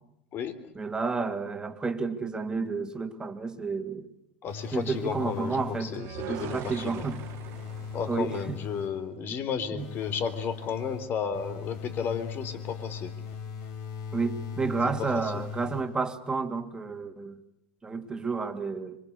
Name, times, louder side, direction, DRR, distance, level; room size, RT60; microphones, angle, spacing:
voice 1, 0.7-4.1 4.7-6.0 6.3-7.3 8.1-8.6 9.3-9.4 9.7-9.9 14.1-17.4 17.8-19.0, right 4 dB, 15° right, 2.8 m, -31 dB
voice 2, 4.4-7.0 7.9-13.1, left 7 dB, 40° left, 3.8 m, -33 dB
sound 1, 4.5-6.1 6.6-9.1 9.8-16.2, left 6 dB, 55° left, 6.0 m, -39 dB
sound 2, 5.9-9.1, right 11 dB, 50° right, 2.3 m, -42 dB
26.0 x 25.0 x 8.3 m
hypercardioid pair, 105°, 6 cm